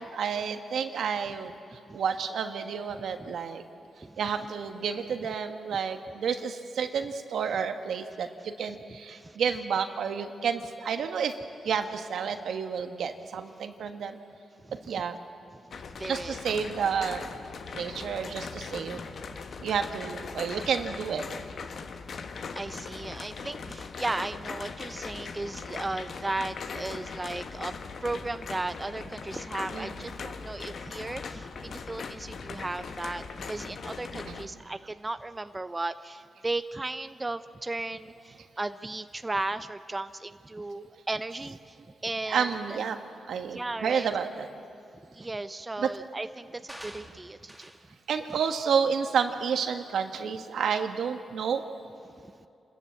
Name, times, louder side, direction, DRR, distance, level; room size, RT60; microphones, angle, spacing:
voice 1, 0.0-3.6 4.2-11.3 11.6-14.2 14.9-15.2 16.1-17.3 17.7-19.0 19.6-21.2 29.7-29.9 34.2-34.4 40.8-40.9 42.3-43.0 43.3-44.5 45.8-45.9 48.1-51.6, right 6 dB, 80° right, 7 dB, 1.4 m, -30 dB
voice 2, 14.6-15.0 15.9-16.4 19.3-19.4 21.7-21.8 22.1-27.7 28.0-42.8 43.5-44.1 45.1-47.7 52.2-52.5, right 2 dB, 25° right, 10 dB, 0.7 m, -36 dB
sound 1, 15.7-34.5, left 5 dB, 65° left, 1.2 m, -40 dB
sound 2, 46.7-47.9 48.3-48.6 49.1-49.2, equal, 5° right, 2.3 m, -47 dB
28.0 x 14.0 x 8.4 m, 2.6 s
cardioid pair, 60°, 0 cm